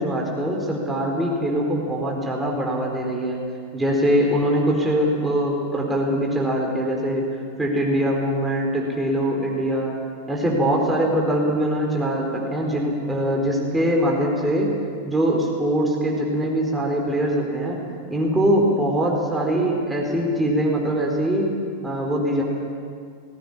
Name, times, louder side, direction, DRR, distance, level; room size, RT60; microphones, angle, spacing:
voice 1, 0.0-3.4 3.7-7.2 7.6-9.9 10.3-14.7 15.0-17.8 18.1-21.5 21.8-22.4, equal, 10° right, -1 dB, 4.4 m, -22 dB
20.5 x 17.5 x 9.9 m, 2.2 s
figure-of-eight pair, 90°, 0 cm